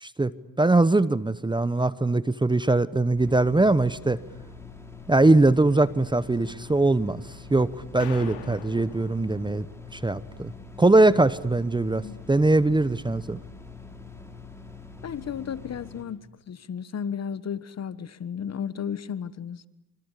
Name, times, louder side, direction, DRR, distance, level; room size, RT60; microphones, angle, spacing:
voice 1, 0.0-0.3 0.6-4.2 5.1-7.2 7.5-9.7 9.9-10.5 10.8-13.4, right 2 dB, 10° right, 0.9 m, -21 dB
sound 1, 3.2-16.0, left 4 dB, 5° left, 5.8 m, -44 dB
sound 2, 8.0-10.0, left 8 dB, 80° left, 4.3 m, -43 dB
voice 2, 15.0-19.7, left 8 dB, 45° left, 1.3 m, -34 dB
25.5 x 25.5 x 8.4 m
supercardioid pair, 80°, 38 cm